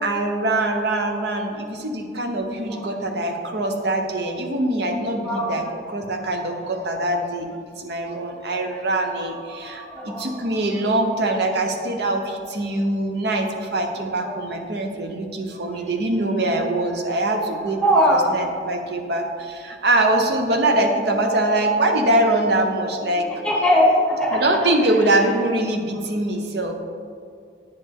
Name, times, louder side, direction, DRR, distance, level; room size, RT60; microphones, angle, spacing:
voice 1, 0.0-7.5 7.8-17.8 18.3-23.3 24.3-26.8, right 1 dB, 70° right, 4 dB, 0.8 m, -23 dB
voice 2, 9.9-10.3 14.2-14.4 17.8-18.3 23.4-24.7, equal, 5° left, -4 dB, 1.3 m, -20 dB
9.2 x 5.3 x 3.5 m, 2.2 s
head